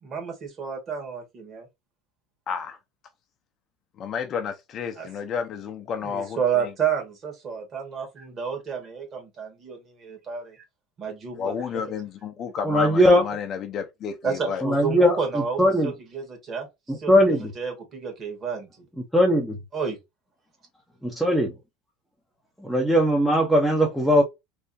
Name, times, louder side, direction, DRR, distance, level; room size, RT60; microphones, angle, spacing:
voice 1, 0.0-1.7 5.0-5.1 6.0-10.6 11.0-11.9 14.2-16.7 16.9-18.9 19.7-20.0, right 6 dB, 30° right, 1.7 m, -31 dB
voice 2, 2.5-2.8 4.0-6.7 11.4-14.6, left 6 dB, 35° left, 0.6 m, -31 dB
voice 3, 12.6-13.2 14.6-15.2 15.6-15.9 16.9-17.5 19.1-19.6 21.0-21.5 22.6-24.2, equal, ahead, 0.7 m, -19 dB
3.4 x 2.7 x 2.6 m
supercardioid pair, 140°, 0 cm